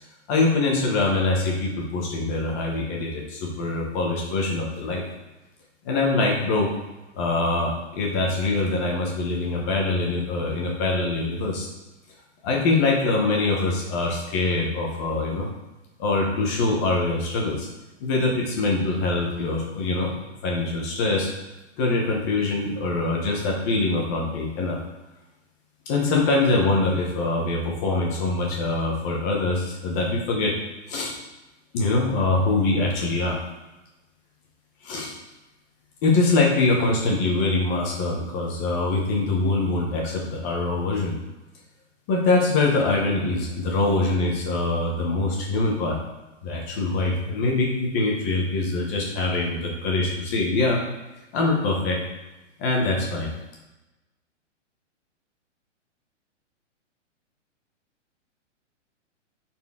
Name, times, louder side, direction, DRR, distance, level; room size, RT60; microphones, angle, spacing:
voice 1, 0.3-5.0 5.8-6.7 7.2-11.7 12.4-15.5 16.0-17.7 18.0-20.1 20.4-21.3 21.8-24.8 25.9-30.6 30.9-31.1 31.7-33.4 34.8-35.1 36.0-41.1 42.1-46.0 46.4-50.8 51.3-52.0 52.6-53.3, left 3 dB, 15° left, -1 dB, 0.8 m, -24 dB
11.0 x 4.4 x 3.6 m, 1.1 s
hypercardioid pair, 175°, 37 cm